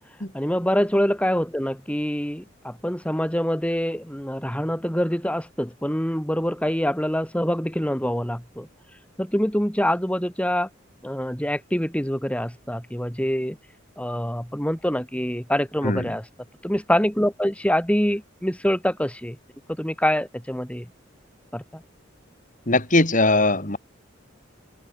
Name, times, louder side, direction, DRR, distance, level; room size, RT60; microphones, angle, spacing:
voice 1, 0.3-8.7 9.2-10.7 11.0-13.6 14.0-16.2 16.6-19.4 19.8-20.9 21.5-21.8, equal, 5° left, 5.7 m, -25 dB
voice 2, 15.8-16.1 22.7-23.8, left 2 dB, 40° left, 5.2 m, -20 dB
head